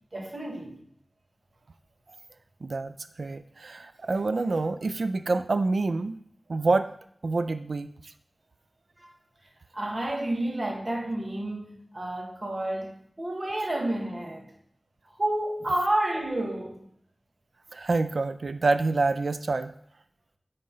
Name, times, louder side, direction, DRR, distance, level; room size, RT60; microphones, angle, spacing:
voice 1, 0.1-0.8 9.0-9.1 9.7-14.5 15.2-16.9, right 1 dB, 45° right, 2.0 m, -30 dB
voice 2, 2.6-2.9 3.2-6.2 6.5-6.9 7.2-8.1 17.7-19.7, right 3 dB, 75° right, 0.4 m, -27 dB
9.3 x 4.3 x 5.5 m
wide cardioid pair, 70°, 0 cm